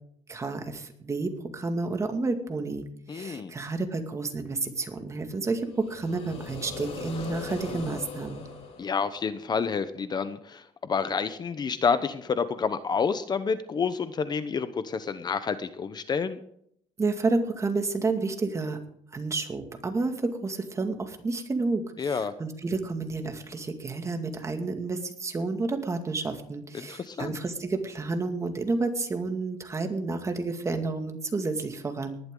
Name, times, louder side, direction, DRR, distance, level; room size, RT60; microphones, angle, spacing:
voice 1, 0.3-8.5 17.0-18.8 19.1-32.2, right 3 dB, 25° right, 5 dB, 2.2 m, -30 dB
voice 2, 3.1-3.5 8.8-16.4 22.0-22.3 26.7-27.4, left 5 dB, 35° left, 12 dB, 0.9 m, -29 dB
sound 1, 5.6-9.6, left 4 dB, 55° left, 4.4 m, -40 dB
19.0 x 11.5 x 3.9 m, 0.70 s
cardioid pair, 120°, 13 cm